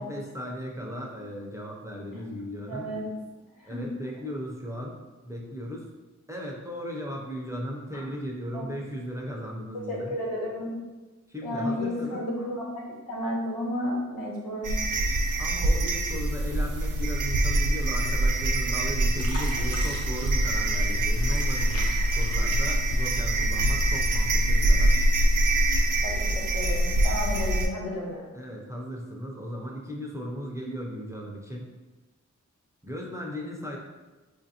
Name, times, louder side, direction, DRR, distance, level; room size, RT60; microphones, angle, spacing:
voice 1, 0.0-2.9 3.6-5.0 5.2-5.9 6.3-10.2 11.3-12.2 15.4-25.0 28.3-31.7 32.8-33.8, equal, 10° right, -2 dB, 0.5 m, -36 dB
voice 2, 2.7-3.1 3.6-3.8 7.9-8.0 8.5-8.7 9.7-10.7 11.4-14.8 26.0-28.3, left 1 dB, 80° left, -5 dB, 1.2 m, -32 dB
sound 1, 14.6-27.7, right 1 dB, 85° right, 0.5 m, -24 dB
Fill (with liquid), 19.2-23.6 24.0-24.8 25.4-25.5, left 1 dB, 55° left, 0.7 m, -43 dB
4.7 x 2.5 x 2.7 m, 1.2 s
wide cardioid pair, 100°, 31 cm